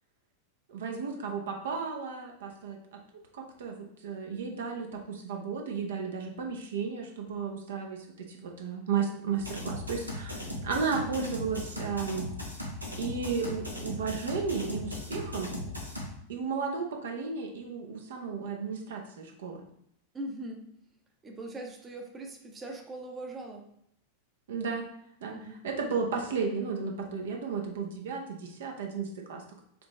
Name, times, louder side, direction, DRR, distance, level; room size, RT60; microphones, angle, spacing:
voice 1, 0.7-3.0 3.3-12.3 13.0-15.5 16.3-19.6 24.5-24.9 25.2-29.4, right 5 dB, 60° right, 2 dB, 0.6 m, -34 dB
sound 1, 9.3-16.1, left 1 dB, 85° right, 0.8 m, -38 dB
voice 2, 20.1-20.7 21.2-23.7 25.3-25.6, right 1 dB, 20° right, 3 dB, 0.7 m, -41 dB
5.0 x 3.0 x 3.0 m, 0.71 s
figure-of-eight pair, 90°, 0 cm